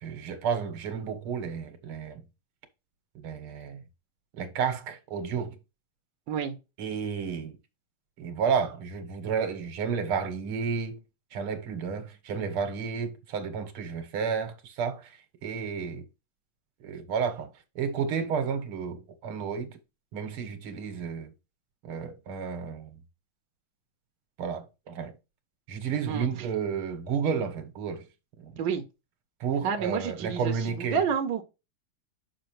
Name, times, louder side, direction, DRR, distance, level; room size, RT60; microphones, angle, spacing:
voice 1, 0.0-2.2 3.2-3.8 4.4-5.6 6.8-7.6 8.2-11.0 11.3-16.0 16.8-17.5 17.8-19.8 20.1-21.3 21.8-22.9 24.4-25.1 25.7-28.0 28.4-28.5 29.4-31.0, right 6 dB, 90° right, 2.1 m, -31 dB
voice 2, 29.6-31.4, right 7 dB, 65° right, 1.7 m, -29 dB
7.0 x 6.2 x 3.1 m
omnidirectional pair, 2.3 m